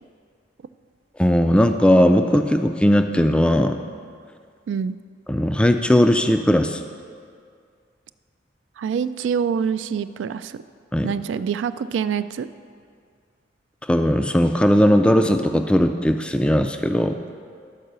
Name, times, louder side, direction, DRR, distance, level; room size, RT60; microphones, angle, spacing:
voice 1, 1.2-3.8 5.3-6.8 10.9-11.1 13.9-17.2, equal, 5° left, 7 dB, 0.3 m, -18 dB
voice 2, 8.8-10.6 11.0-12.5, right 7 dB, 85° right, 13 dB, 0.3 m, -25 dB
12.5 x 4.7 x 6.7 m, 2.2 s
head